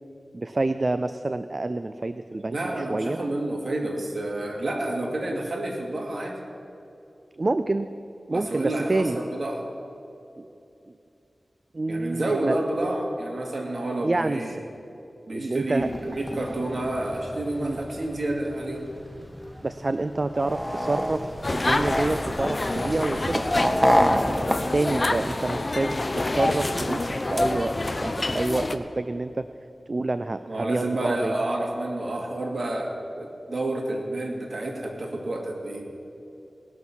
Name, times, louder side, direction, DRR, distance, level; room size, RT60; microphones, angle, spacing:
voice 1, 0.3-3.2 7.4-7.9 8.3-9.2 10.4-10.5 11.7-12.6 14.0-14.4 15.3-15.9 17.6-17.8 19.6-23.4 24.7-27.8 28.0-29.5 29.9-31.3, right 2 dB, 45° right, 11 dB, 0.4 m, -27 dB
voice 2, 2.5-6.4 8.3-9.6 11.9-14.6 15.3-18.9 30.5-35.8, right 1 dB, 60° right, 0 dB, 2.1 m, -29 dB
sound 1, 15.8-24.6, equal, 5° left, 1.0 m, -28 dB
sound 2, 21.4-28.8, left 2 dB, 40° left, 0.7 m, -27 dB
18.5 x 6.3 x 7.2 m, 2.8 s
wide cardioid pair, 55°, 0 cm